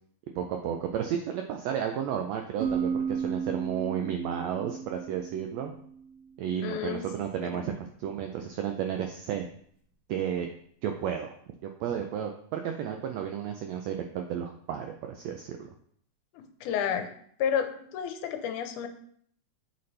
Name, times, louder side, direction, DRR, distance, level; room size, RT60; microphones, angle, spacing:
voice 1, 0.3-5.7 6.4-9.5 10.1-10.5 10.8-11.3 11.6-15.6, right 9 dB, 85° right, 4 dB, 1.5 m, -32 dB
sound 1, 2.6-6.2, right 6 dB, 70° right, 1.7 m, -33 dB
voice 2, 6.6-7.1 7.4-7.7 16.3-17.1 17.4-18.9, left 8 dB, 90° left, 7 dB, 2.1 m, -31 dB
8.1 x 4.1 x 3.2 m, 0.62 s
omnidirectional pair, 3.6 m